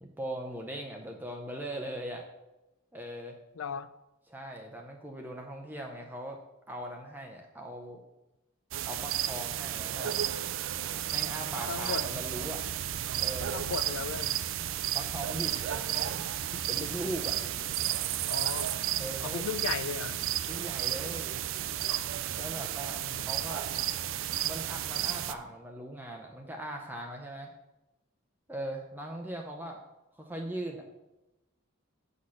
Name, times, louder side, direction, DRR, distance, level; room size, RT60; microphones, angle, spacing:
voice 1, 0.0-2.3 2.9-3.4 4.3-6.4 6.7-8.0 8.9-10.3 11.1-12.6 13.2-13.6 14.9-16.2 16.7-17.4 19.0-19.4 20.5-21.4 22.4-23.8 24.4-27.5 28.5-29.8 30.1-30.8, right 1 dB, 10° right, 1 dB, 0.6 m, -40 dB
voice 2, 3.5-3.9 11.7-12.1 13.4-14.4 16.5-17.1 18.2-18.7 19.2-20.2 23.0-23.3, left 6 dB, 70° left, 14 dB, 0.4 m, -37 dB
sound 1, 8.7-25.3, right 11 dB, 60° right, 0.4 m, -33 dB
7.1 x 4.3 x 6.3 m, 0.97 s
head